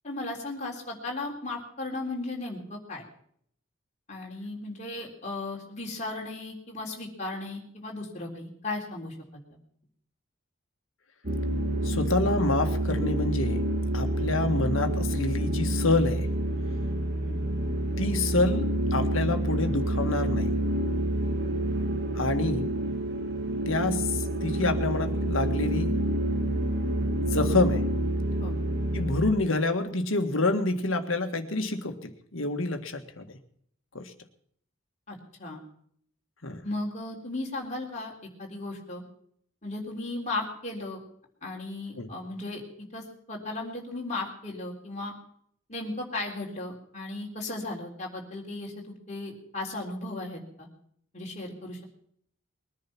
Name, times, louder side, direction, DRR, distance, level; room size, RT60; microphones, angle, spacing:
voice 1, 0.0-3.0 4.1-9.4 17.2-17.4 28.4-28.5 35.1-35.6 36.6-38.1 38.4-39.0 39.6-41.0 41.4-45.1 45.7-50.7 51.1-51.8, left 2 dB, 35° left, -1 dB, 3.6 m, -36 dB
sound 1, 11.2-29.3, right 1 dB, 55° right, 2.0 m, -28 dB
voice 2, 11.8-13.6 13.9-16.3 18.0-20.6 22.1-22.7 23.7-26.0 27.2-27.9 28.9-33.2 33.9-34.1 36.4-36.6 42.0-42.1, left 2 dB, 80° left, 7 dB, 1.8 m, -27 dB
21.5 x 10.5 x 6.0 m, 0.65 s
head